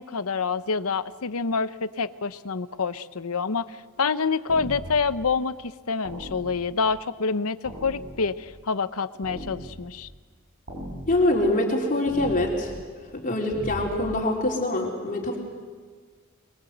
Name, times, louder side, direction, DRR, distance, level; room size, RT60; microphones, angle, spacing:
voice 1, 0.0-10.1, left 4 dB, 80° left, 13 dB, 0.8 m, -27 dB
sound 1, 4.5-5.2 6.0-6.9 7.6-8.5 9.2-10.0 10.7-11.4 12.1-12.7 13.5-14.1, equal, 40° right, 6.7 m, -39 dB
voice 2, 11.1-12.8 13.1-15.4, left 1 dB, 40° left, 0 dB, 3.5 m, -24 dB
26.0 x 22.5 x 8.0 m, 1.5 s
head